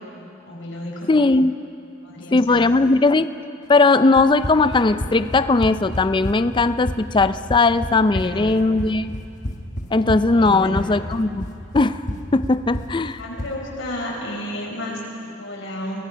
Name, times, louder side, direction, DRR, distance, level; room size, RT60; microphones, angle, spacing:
voice 1, 0.1-1.1 2.0-2.7 8.1-8.6 10.3-10.9 13.2-16.0, left 1 dB, 75° left, -2 dB, 5.4 m, -32 dB
voice 2, 1.1-1.6 2.3-3.3 3.7-9.1 9.9-11.5 11.7-12.0 12.3-13.2, left 3 dB, 25° left, 13 dB, 0.4 m, -18 dB
Run, 4.2-13.6, left 1 dB, 40° left, 1.3 m, -31 dB
23.0 x 19.5 x 5.7 m, 2.6 s
head